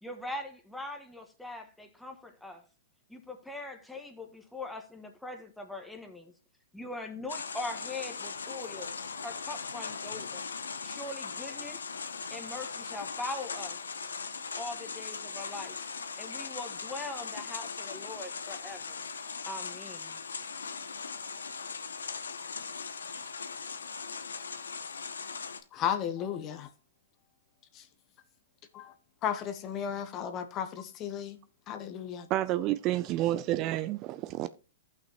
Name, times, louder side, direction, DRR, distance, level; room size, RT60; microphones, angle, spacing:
voice 1, 0.0-2.6 3.1-6.3 6.7-8.9 9.2-10.5 10.8-11.8 12.3-13.8 14.6-15.8 16.2-19.0 19.4-20.2, left 2 dB, 5° left, 1.5 m, -41 dB
sound 1, 7.3-25.6, left 5 dB, 85° left, 0.8 m, -39 dB
voice 2, 25.7-26.7 28.7-28.9 29.2-31.4 31.7-32.3, left 9 dB, 35° left, 1.0 m, -34 dB
voice 3, 32.3-34.6, right 14 dB, 35° right, 0.4 m, -30 dB
14.5 x 5.8 x 3.0 m
hypercardioid pair, 120°, 0 cm